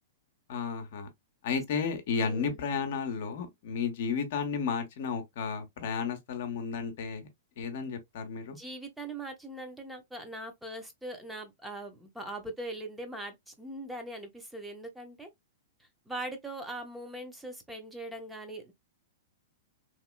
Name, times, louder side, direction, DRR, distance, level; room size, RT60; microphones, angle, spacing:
voice 1, 0.5-1.1 1.4-7.3 7.6-8.6, left 5 dB, 55° left, 0.8 m, -33 dB
voice 2, 2.2-2.6 8.5-15.3 15.8-18.7, right 1 dB, 5° right, 0.8 m, -41 dB
3.1 x 2.8 x 2.3 m
figure-of-eight pair, 105°, 0 cm